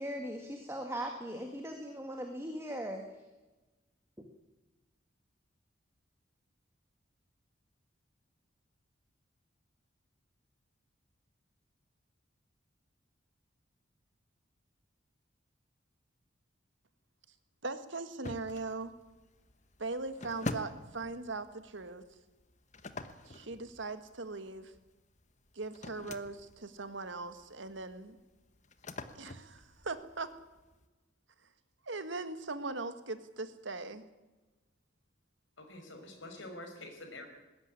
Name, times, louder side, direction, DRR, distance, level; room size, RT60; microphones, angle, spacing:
voice 1, 0.0-3.0, equal, 15° right, 4 dB, 1.8 m, -39 dB
voice 2, 17.6-18.9 19.8-22.0 23.3-24.7 25.5-28.2 29.1-30.3 31.8-34.0, right 3 dB, 70° right, 11 dB, 1.7 m, -40 dB
sound 1, 18.2-30.8, left 2 dB, 35° left, 1.2 m, -46 dB
voice 3, 35.6-37.3, left 1 dB, 75° left, 4 dB, 5.3 m, -46 dB
20.0 x 16.0 x 9.8 m, 1.1 s
head